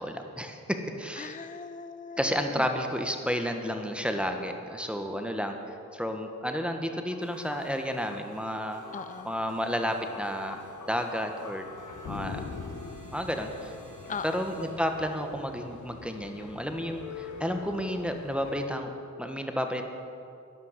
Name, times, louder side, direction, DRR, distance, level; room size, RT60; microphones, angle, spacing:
voice 1, 0.0-1.3 2.2-5.6 5.9-8.8 9.2-10.6 10.9-11.6 12.0-12.4 13.1-13.7 14.2-18.9 19.2-19.9, equal, 5° right, 4 dB, 1.3 m, -31 dB
voice 2, 1.2-2.6 8.9-9.3 14.1-14.4, left 5 dB, 25° left, 10 dB, 0.5 m, -39 dB
sound 1, 7.1-18.7, left 5 dB, 75° left, 1.0 m, -44 dB
sound 2, 7.2-15.3, right 2 dB, 90° right, 2.3 m, -53 dB
11.5 x 11.0 x 7.4 m, 2.5 s
cardioid pair, 65°, 30 cm